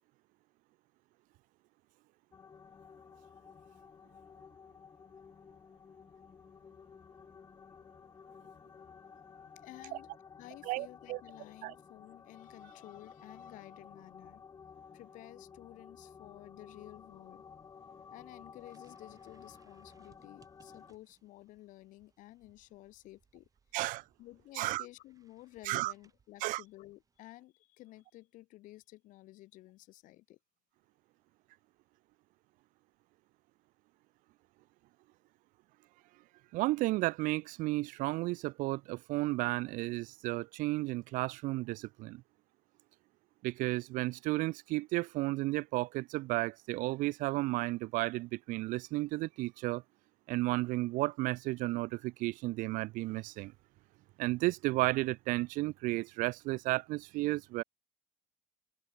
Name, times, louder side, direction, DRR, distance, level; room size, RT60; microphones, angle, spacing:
sound 1, 2.3-20.9, left 6 dB, 25° left, 1.5 m, -54 dB
voice 1, 9.6-10.1 10.4-14.4 14.9-17.4 18.1-23.5 23.8-30.4, left 17 dB, 65° left, 3.1 m, -53 dB
voice 2, 10.7-11.2 11.6-11.7 23.7-24.0 24.6-24.8 25.7-25.9 26.4-26.6 36.5-42.2 43.4-49.8 50.3-53.5 54.2-57.6, right 20 dB, 70° right, 0.6 m, -33 dB
sound 2, 16.7-27.2, right 6 dB, 25° right, 5.7 m, -71 dB
cardioid pair, 150°, 14 cm